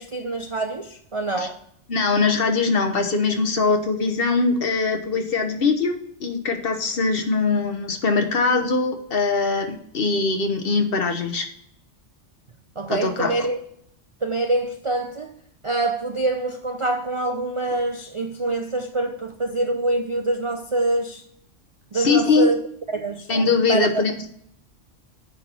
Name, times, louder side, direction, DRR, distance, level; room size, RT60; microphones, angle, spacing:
voice 1, 0.0-1.6 12.8-13.6 14.2-15.4 15.6-21.2 21.9-22.6 22.9-23.3 23.7-24.0, right 2 dB, 40° right, 0.4 m, -25 dB
voice 2, 1.9-11.5 12.9-13.5 21.9-22.5 23.3-24.1, left 4 dB, 50° left, 1.3 m, -22 dB
9.7 x 4.5 x 4.1 m
omnidirectional pair, 1.3 m